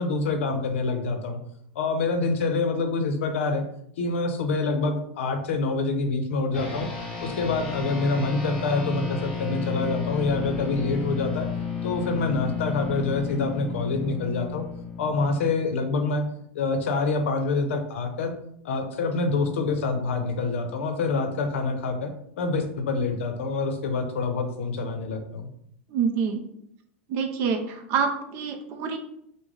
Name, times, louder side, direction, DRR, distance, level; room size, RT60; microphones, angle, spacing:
voice 1, 0.0-1.4 1.8-3.6 4.0-6.9 7.2-11.5 11.8-14.7 15.0-16.2 16.5-18.3 18.6-22.1 22.4-25.5, left 3 dB, 80° left, 6 dB, 0.6 m, -26 dB
sound 1, 6.5-16.2, left 5 dB, 15° left, 0.9 m, -32 dB
voice 2, 25.9-26.4 27.1-29.0, right 6 dB, 35° right, 5 dB, 0.4 m, -26 dB
3.7 x 2.1 x 3.2 m, 0.73 s
supercardioid pair, 175°, 7 cm